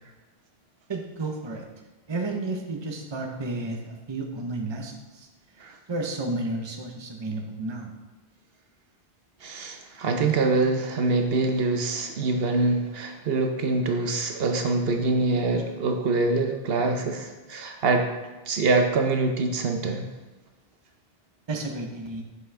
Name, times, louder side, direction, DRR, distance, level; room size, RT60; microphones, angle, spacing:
voice 1, 0.9-1.6 2.1-5.3 5.9-7.9 21.5-22.2, right 2 dB, 30° right, 2 dB, 0.8 m, -32 dB
voice 2, 9.4-18.1 18.5-20.1, right 3 dB, 70° right, 4 dB, 1.0 m, -25 dB
7.3 x 6.0 x 3.4 m, 1.2 s
omnidirectional pair, 1.0 m